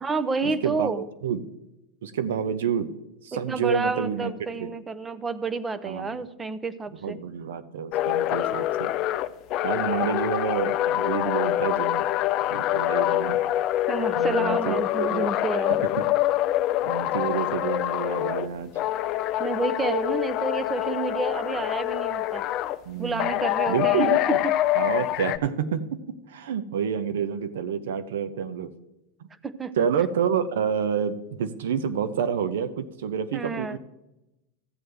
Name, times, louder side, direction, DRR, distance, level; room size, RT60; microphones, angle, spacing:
voice 1, 0.0-1.0 3.3-7.2 13.9-15.8 19.4-22.4 23.0-24.6 29.4-29.7 33.3-33.8, right 4 dB, 20° right, 14 dB, 0.7 m, -29 dB
voice 2, 0.6-1.0 1.2-1.4 2.0-2.9 3.2-4.3 4.6-4.7 5.8-6.2 7.0-8.9 9.6-12.0 12.5-13.4 14.2-15.3 16.0-16.1 16.8-18.7 22.9-23.3 23.7-24.4 24.7-26.0 26.3-28.7 29.8-33.8, right 7 dB, 75° right, 12 dB, 0.8 m, -28 dB
sound 1, 7.9-18.5 18.8-22.8 23.2-25.4, left 14 dB, 45° left, 0.4 m, -25 dB
14.0 x 7.7 x 3.4 m, 0.92 s
hypercardioid pair, 110°, 0 cm